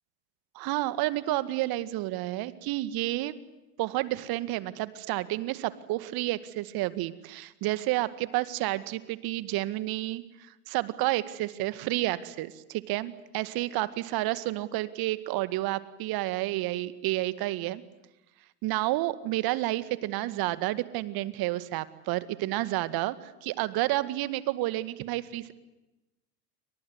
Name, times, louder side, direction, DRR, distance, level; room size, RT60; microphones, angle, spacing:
voice 1, 0.5-3.3 3.8-10.2 10.7-17.8 18.6-25.5, right 17 dB, 45° right, 15 dB, 2.1 m, -30 dB
29.5 x 24.5 x 8.1 m, 0.98 s
figure-of-eight pair, 75°, 48 cm